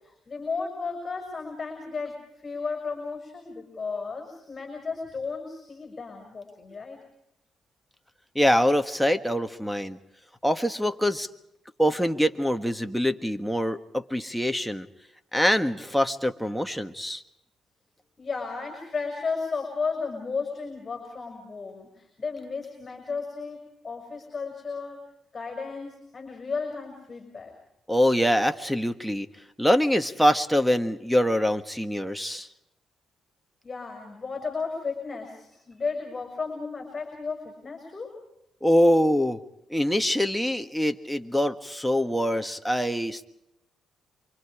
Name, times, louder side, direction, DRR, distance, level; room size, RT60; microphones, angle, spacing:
voice 1, 0.3-7.0 18.2-25.0 25.3-27.5 33.6-38.1, left 4 dB, 30° left, 3 dB, 6.1 m, -34 dB
voice 2, 8.4-10.0 10.4-11.3 11.8-14.9 15.3-17.2 27.9-29.3 29.6-32.5 38.6-39.4 39.7-43.3, equal, ahead, 6 dB, 1.6 m, -24 dB
28.0 x 25.0 x 5.0 m, 0.83 s
cardioid pair, 90°, 0 cm